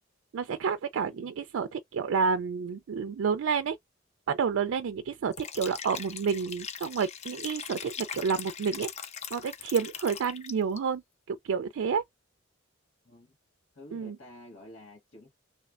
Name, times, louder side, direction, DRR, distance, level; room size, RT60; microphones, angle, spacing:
voice 1, 0.3-3.8 4.3-8.9 9.3-11.0 11.3-12.0 13.9-14.2, right 6 dB, 75° right, 0.4 m, -29 dB
voice 2, 1.0-1.3 13.0-13.4 13.7-15.3, left 1 dB, 70° left, 1.9 m, -50 dB
Liquid, 5.3-10.8, left 7 dB, 35° left, 0.4 m, -41 dB
3.2 x 3.0 x 2.4 m
head